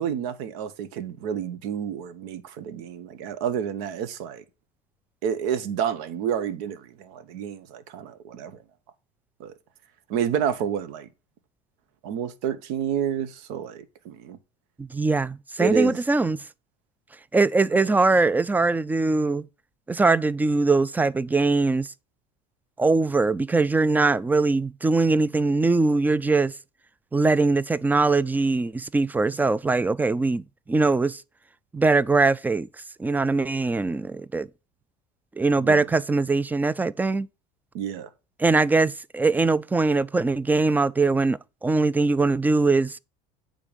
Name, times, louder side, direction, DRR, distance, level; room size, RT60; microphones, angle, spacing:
voice 1, 0.0-4.4 5.2-8.6 9.4-9.5 10.1-11.1 12.0-14.4 15.6-16.0 17.8-17.9 35.6-35.8 37.7-38.1, right 8 dB, 75° right, 1.0 m, -29 dB
voice 2, 14.8-16.4 17.3-19.5 19.9-21.9 22.8-26.5 27.1-31.2 31.7-32.7 33.0-34.5 35.4-37.3 38.4-43.0, right 3 dB, 10° right, 0.3 m, -22 dB
8.8 x 3.7 x 5.1 m
supercardioid pair, 95°, 19 cm